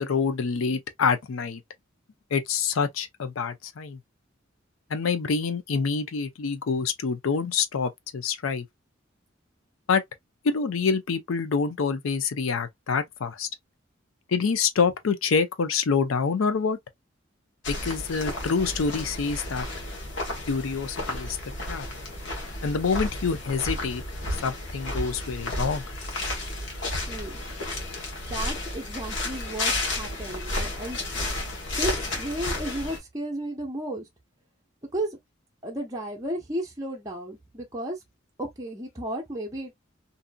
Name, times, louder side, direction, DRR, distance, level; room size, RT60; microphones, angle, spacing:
voice 1, 0.0-1.6 2.3-4.0 4.9-8.6 9.9-10.0 10.4-13.5 14.3-16.8 17.7-19.7 20.5-21.4 21.7-21.9 22.6-24.0 24.4-25.8, left 5 dB, 85° left, 0.5 m, -26 dB
sound 1, 17.6-33.0, left 2 dB, 60° left, 1.1 m, -32 dB
voice 2, 27.1-27.4 28.3-31.0 31.8-34.1 34.9-35.1 35.6-38.0 38.4-39.7, right 1 dB, 15° right, 0.6 m, -33 dB
2.7 x 2.5 x 2.2 m
head